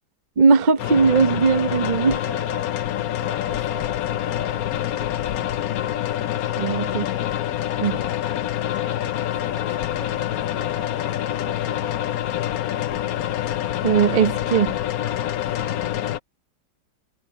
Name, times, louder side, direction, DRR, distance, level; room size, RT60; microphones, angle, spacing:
voice 1, 0.4-2.2 6.6-7.0 7.8-7.9 13.8-14.8, right 5 dB, 40° right, 0.6 m, -19 dB
sound 1, 0.8-16.2, left 12 dB, 65° left, 1.0 m, -26 dB
voice 2, 2.3-5.9 6.6-7.2 7.6-8.4 8.6-12.2 15.2-15.8, right 1 dB, 70° right, 6.1 m, -44 dB
omnidirectional pair, 2.0 m